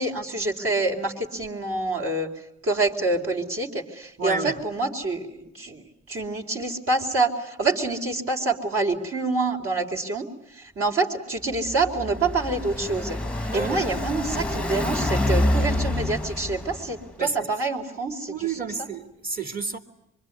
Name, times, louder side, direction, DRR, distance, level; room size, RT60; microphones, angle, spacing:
voice 1, 0.0-2.3 2.6-10.3 10.5-13.2 13.5-18.3 18.6-18.7, right 3 dB, 50° right, 4.3 m, -26 dB
voice 2, 4.2-4.6 13.5-14.2 17.2-17.5 18.2-19.8, right 4 dB, 30° right, 3.0 m, -31 dB
Car passing by, 11.5-17.1, left 1 dB, 5° left, 1.2 m, -27 dB
25.5 x 23.5 x 9.7 m
cardioid pair, 90°, 30 cm